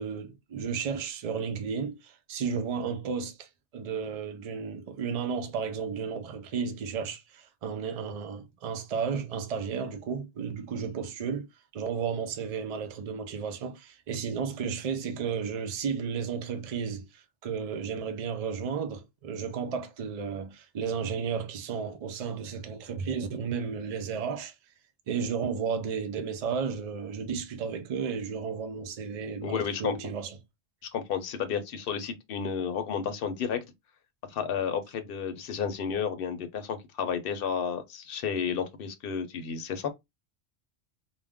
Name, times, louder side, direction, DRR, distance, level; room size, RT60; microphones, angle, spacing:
voice 1, 0.0-11.5 11.7-24.5 25.1-30.4, right 6 dB, 75° right, 0.3 m, -33 dB
voice 2, 29.4-30.0 30.9-33.6 34.3-39.9, left 7 dB, 60° left, 0.7 m, -32 dB
2.4 x 2.1 x 3.4 m
omnidirectional pair, 1.2 m